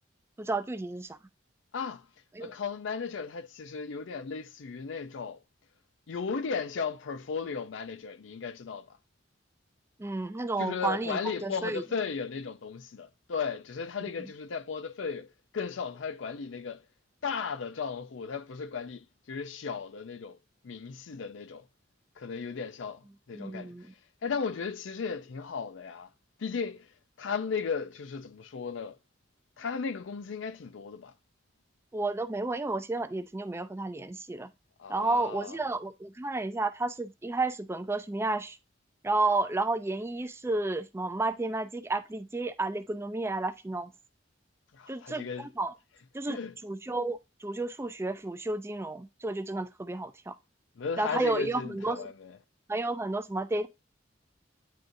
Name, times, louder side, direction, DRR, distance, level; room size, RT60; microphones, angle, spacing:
voice 1, 0.4-1.2 2.3-2.5 10.0-11.8 14.2-14.3 23.3-23.9 31.9-34.5 34.9-38.6 39.0-43.9 44.9-45.7 46.1-50.4 51.0-52.1 52.7-53.7, right 2 dB, 15° right, 0.4 m, -32 dB
voice 2, 1.7-2.1 2.4-5.4 6.1-9.0 10.6-15.3 15.5-16.8 17.2-20.4 20.6-21.6 22.2-23.7 24.2-26.1 26.4-26.9 27.2-29.0 29.6-31.1 34.8-35.6 44.7-45.5 46.3-46.5 50.8-52.4, left 5 dB, 75° left, 0.5 m, -35 dB
9.4 x 3.8 x 2.6 m
head